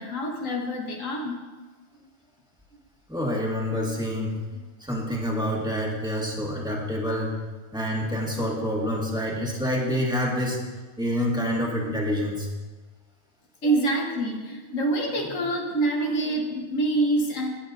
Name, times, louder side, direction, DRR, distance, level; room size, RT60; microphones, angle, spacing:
voice 1, 0.0-1.3 4.5-4.6 13.6-17.5, right 2 dB, 75° left, 0 dB, 1.6 m, -26 dB
voice 2, 3.1-4.4 4.8-7.3 7.7-10.6 11.0-12.5 13.6-13.8 16.0-16.1, equal, 5° right, -3 dB, 1.7 m, -27 dB
16.0 x 8.5 x 2.6 m, 1.3 s
omnidirectional pair, 1.4 m